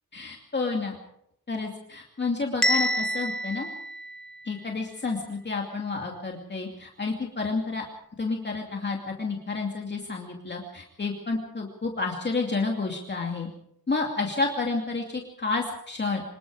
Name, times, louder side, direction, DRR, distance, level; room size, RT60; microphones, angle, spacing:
voice 1, 0.1-0.9 1.5-3.7 4.4-7.8 8.2-13.5 13.9-16.2, left 3 dB, 30° left, 0 dB, 2.6 m, -30 dB
Bell, 2.6-4.7, equal, ahead, 0.8 m, -28 dB
26.0 x 20.5 x 4.9 m, 0.76 s
wide cardioid pair, 155°, 36 cm